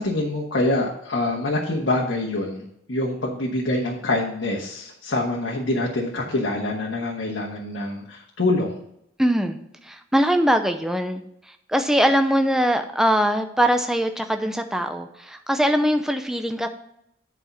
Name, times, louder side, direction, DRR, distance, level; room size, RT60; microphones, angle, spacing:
voice 1, 0.0-8.8, left 2 dB, 90° left, -3 dB, 1.4 m, -25 dB
voice 2, 9.2-9.6 9.9-11.2 11.7-16.7, equal, 5° right, 6 dB, 0.6 m, -21 dB
8.4 x 4.9 x 5.9 m, 0.76 s
head